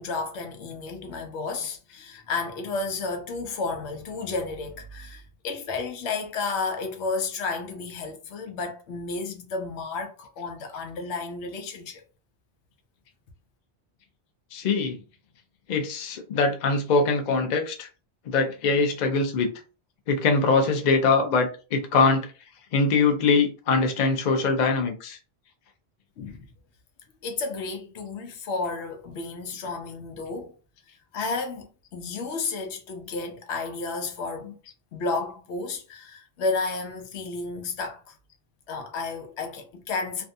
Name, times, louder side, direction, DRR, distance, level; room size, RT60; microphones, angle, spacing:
voice 1, 0.0-12.0 26.2-26.4 27.2-30.5 31.1-34.6 34.9-38.1 38.7-40.2, left 3 dB, 90° left, 0.9 m, -32 dB
voice 2, 14.5-15.0 15.7-17.9 18.3-19.5 20.1-22.3 22.7-25.2, left 4 dB, 50° left, 0.6 m, -23 dB
2.5 x 2.2 x 2.6 m
omnidirectional pair, 1.1 m